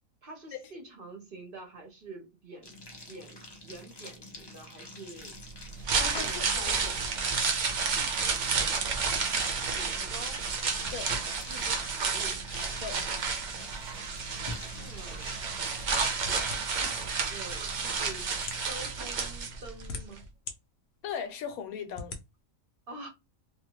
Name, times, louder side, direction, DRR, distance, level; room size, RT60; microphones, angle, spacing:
voice 1, 0.2-2.8 3.1-5.5 6.1-7.2 7.9-8.7 9.7-10.5 11.5-12.5 14.7-15.4 16.7-18.4 18.6-20.3 22.9-23.1, right 2 dB, 50° right, 0.8 m, -47 dB
sound 1, 2.6-18.6, left 1 dB, 40° left, 0.3 m, -47 dB
sound 2, 5.7-19.9 20.2-20.3, right 5 dB, 75° right, 0.4 m, -31 dB
voice 2, 6.0-6.9 10.9-11.1 12.8-13.0 21.0-22.2, left 7 dB, 85° left, 1.1 m, -38 dB
sound 3, 15.9-16.9 17.7-17.8 18.4-18.7 19.5-20.6 21.1-21.2 21.9-22.2, left 4 dB, 60° left, 0.8 m, -40 dB
2.6 x 2.4 x 2.9 m
omnidirectional pair, 1.5 m